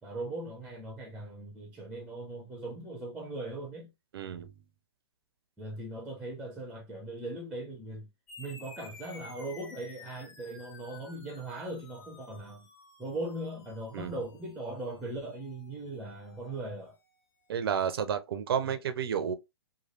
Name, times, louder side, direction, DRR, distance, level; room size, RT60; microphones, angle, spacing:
voice 1, 0.0-3.9 5.6-8.1 8.4-12.7 13.0-17.0 18.6-18.8, right 2 dB, 5° right, 0.6 m, -39 dB
voice 2, 4.1-4.5 13.9-14.1 17.5-19.3, right 8 dB, 60° right, 0.5 m, -31 dB
sound 1, 8.3-17.2, left 4 dB, 50° left, 1.3 m, -54 dB
3.1 x 2.4 x 2.6 m
figure-of-eight pair, 120°, 14 cm